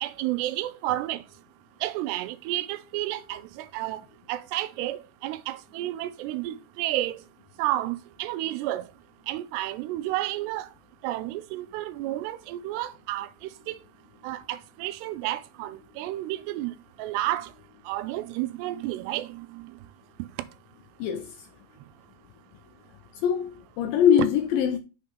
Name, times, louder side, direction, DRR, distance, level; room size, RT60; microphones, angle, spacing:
voice 1, 0.0-1.2 1.8-3.4 3.7-4.0 4.3-7.2 7.6-8.8 9.3-10.7 11.0-13.3 13.7-13.8 14.2-16.7 17.0-17.5 17.9-19.3, right 15 dB, 90° right, 2.7 m, -31 dB
voice 2, 21.0-21.5 23.2-24.8, left 9 dB, 85° left, 2.1 m, -23 dB
6.8 x 5.1 x 4.4 m
omnidirectional pair, 4.7 m